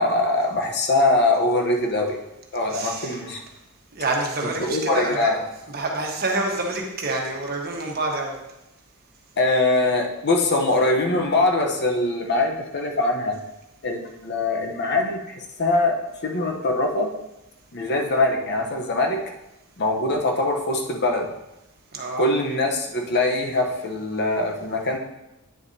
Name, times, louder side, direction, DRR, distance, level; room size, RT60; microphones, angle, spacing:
voice 1, 0.0-2.2 2.5-3.4 4.6-5.4 9.4-13.4 13.8-15.2 15.6-17.1 17.7-19.2 19.8-21.3 22.2-25.0, left 2 dB, 50° left, 2 dB, 1.0 m, -22 dB
voice 2, 2.7-3.2 3.9-5.4 5.7-8.4 21.9-22.3, right 2 dB, 45° right, 0 dB, 1.3 m, -27 dB
9.5 x 6.9 x 2.8 m, 0.92 s
head